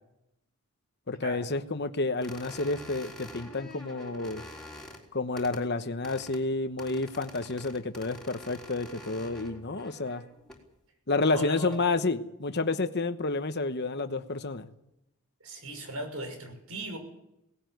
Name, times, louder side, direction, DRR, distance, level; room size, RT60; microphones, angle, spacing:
voice 1, 1.1-4.4 5.1-10.2 11.1-14.7, left 3 dB, 50° left, 8 dB, 1.1 m, -30 dB
sound 1, 2.2-5.0 5.4-5.6 6.0-6.4 6.8-10.6 11.4-11.8, left 1 dB, 5° left, 3.8 m, -46 dB
voice 2, 11.3-11.8 15.4-17.0, right 1 dB, 75° right, 6 dB, 6.3 m, -38 dB
18.5 x 17.5 x 9.3 m, 0.84 s
head